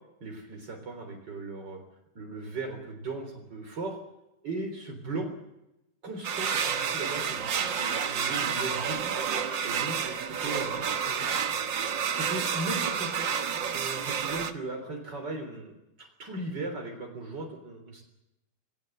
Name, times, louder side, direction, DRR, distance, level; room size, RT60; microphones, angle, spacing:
voice 1, 0.2-1.8 2.2-4.0 4.4-5.3 6.0-9.1 9.6-11.3 12.1-13.3 13.7-18.0, right 2 dB, 70° right, 2 dB, 4.3 m, -38 dB
sound 1, 6.2-14.5, right 7 dB, 85° right, 2.1 m, -30 dB
27.5 x 19.5 x 7.8 m, 0.90 s
omnidirectional pair, 2.0 m